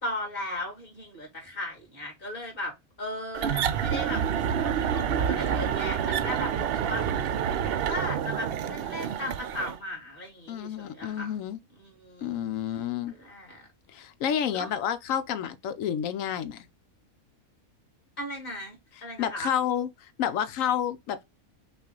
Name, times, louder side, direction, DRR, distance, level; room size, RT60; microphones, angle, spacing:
voice 1, 0.0-7.4 7.9-11.4 11.7-12.5 13.1-13.7 14.5-14.7 18.2-18.8 19.0-19.5, left 1 dB, 40° left, 2.4 m, -37 dB
sound 1, 3.3-9.8, right 8 dB, 65° right, 0.6 m, -28 dB
voice 2, 10.5-11.6 12.2-13.1 13.9-16.7 19.2-21.2, left 9 dB, 75° left, 0.9 m, -30 dB
5.8 x 2.4 x 3.7 m
omnidirectional pair, 1.5 m